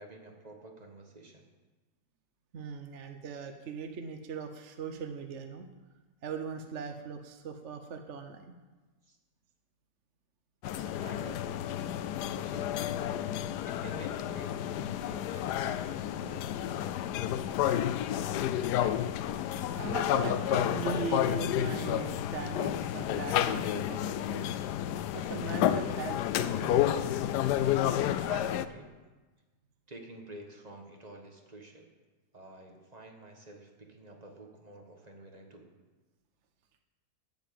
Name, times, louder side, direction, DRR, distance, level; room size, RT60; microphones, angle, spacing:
voice 1, 0.0-1.4 9.1-9.2 10.6-11.7 12.3-12.7 13.6-17.6 28.3-28.9 29.9-31.9 32.3-35.7, right 2 dB, 25° right, 2 dB, 1.5 m, -49 dB
voice 2, 2.5-5.7 6.2-8.4 19.8-24.4 25.1-26.8, right 4 dB, 55° right, 6 dB, 1.0 m, -39 dB
sound 1, 10.6-28.7, left 11 dB, 80° left, 1.1 m, -31 dB
9.2 x 9.1 x 7.6 m, 1.2 s
omnidirectional pair, 1.7 m